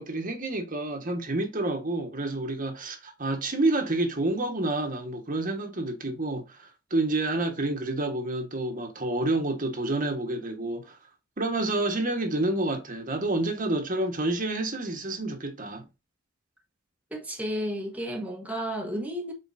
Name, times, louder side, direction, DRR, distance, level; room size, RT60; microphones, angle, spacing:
voice 1, 0.0-11.0 11.4-15.9, right 2 dB, 45° right, 1.5 m, -29 dB
voice 2, 17.1-19.3, equal, 10° right, 1.4 m, -32 dB
7.5 x 4.8 x 2.7 m
head